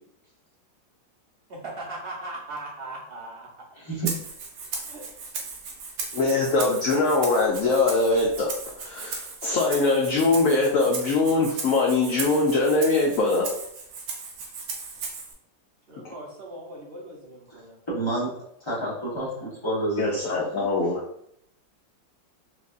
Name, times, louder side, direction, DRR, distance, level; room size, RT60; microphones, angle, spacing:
voice 1, 1.5-3.5 4.8-5.1 15.9-17.8, right 2 dB, 45° right, -4 dB, 0.8 m, -39 dB
Rattle (instrument), 4.1-15.3, right 4 dB, 80° right, 1.4 m, -36 dB
voice 2, 6.1-8.5 8.8-13.5 16.0-16.1 20.0-21.0, left 3 dB, 70° left, -2 dB, 0.8 m, -22 dB
voice 3, 17.9-18.3 18.6-20.2, right 2 dB, 25° left, -6 dB, 0.7 m, -28 dB
4.6 x 2.5 x 2.5 m, 0.71 s
omnidirectional pair, 2.0 m